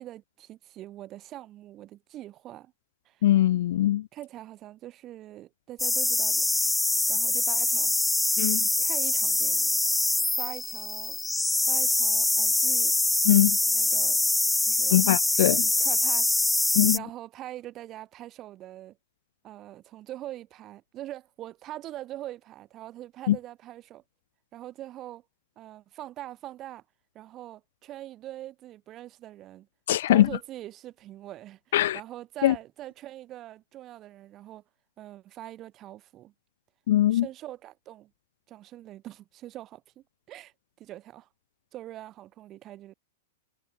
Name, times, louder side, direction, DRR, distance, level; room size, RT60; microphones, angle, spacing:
voice 1, 0.0-2.7 3.0-3.3 4.1-6.5 7.1-7.9 8.8-9.8 10.3-11.2 11.7-12.9 13.7-14.2 14.6-15.0 15.3-15.5 15.8-16.7 16.9-19.0 19.4-24.0 24.5-25.2 25.6-26.8 27.1-29.7 30.1-34.6 35.0-36.3 37.1-38.1 38.5-41.3 41.7-42.9, right 14 dB, 35° right, 6.3 m, -43 dB
voice 2, 3.2-4.1 8.4-8.7 13.3-13.6 14.9-15.7 16.8-17.0 23.3-23.4 29.9-30.3 31.7-32.0 32.4-32.5 36.9-37.3, left 13 dB, 65° left, 0.4 m, -21 dB
sound 1, 5.8-17.0, left 2 dB, 5° left, 1.2 m, -24 dB
hypercardioid pair, 110°, 0 cm